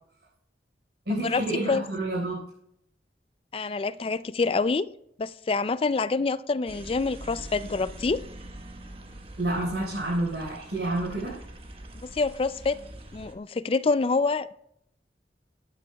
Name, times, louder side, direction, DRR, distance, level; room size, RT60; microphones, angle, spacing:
voice 1, 1.1-2.4 9.4-11.4, right 1 dB, 80° right, 4.4 m, -29 dB
voice 2, 3.5-4.9 5.2-8.2 12.0-12.8 13.1-14.5, left 4 dB, 30° left, 0.4 m, -26 dB
sound 1, 6.7-13.4, right 1 dB, 35° right, 1.1 m, -43 dB
20.5 x 9.1 x 2.3 m
head